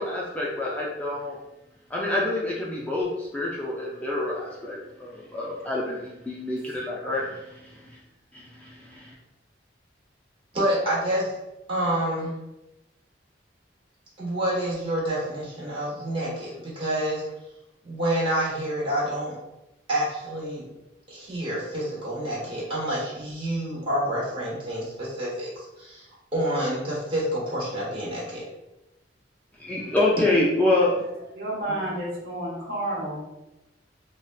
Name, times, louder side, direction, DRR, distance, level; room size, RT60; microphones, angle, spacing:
voice 1, 0.0-1.4 1.9-8.0 8.3-9.1 29.6-31.1 31.7-31.8, left 2 dB, 10° left, -5 dB, 0.3 m, -27 dB
voice 2, 10.5-11.3 11.7-12.3 14.2-17.3 17.8-19.4 19.9-20.7 21.1-25.5 25.8-26.0 26.3-28.4, right 1 dB, 30° right, -6 dB, 1.1 m, -28 dB
voice 3, 31.3-33.2, right 1 dB, 55° right, -5 dB, 1.0 m, -30 dB
3.7 x 2.1 x 2.2 m, 0.95 s
head